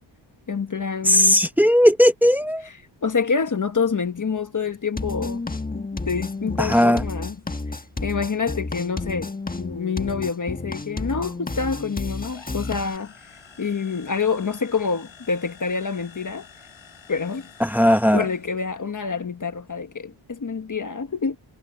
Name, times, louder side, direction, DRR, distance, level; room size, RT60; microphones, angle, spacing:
voice 1, 0.5-1.5 2.6-2.7 3.0-5.4 6.0-7.4 8.0-13.1 13.6-16.5 17.1-17.5 18.1-21.4, left 5 dB, 40° left, 1.4 m, -27 dB
voice 2, 1.0-2.7 6.6-7.0 17.6-18.2, equal, 5° right, 1.2 m, -17 dB
sound 1, 5.0-13.0, left 3 dB, 20° left, 1.5 m, -31 dB
sound 2, 12.2-18.6, left 7 dB, 80° left, 6.0 m, -48 dB
wide cardioid pair, 160°, 46 cm